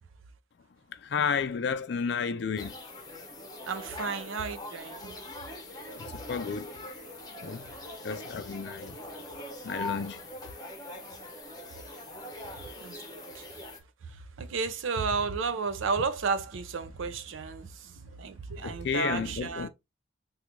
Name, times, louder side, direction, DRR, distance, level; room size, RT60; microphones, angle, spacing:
voice 1, 1.1-2.7 6.3-6.7 7.4-7.6 8.0-8.9 9.6-10.2 18.6-19.7, left 6 dB, 55° left, 0.4 m, -31 dB
sound 1, 2.6-13.8, left 1 dB, 20° left, 0.7 m, -42 dB
voice 2, 3.7-5.1 12.8-12.9 14.4-17.7 18.2-19.7, right 4 dB, 80° right, 0.5 m, -32 dB
2.9 x 2.3 x 3.6 m
head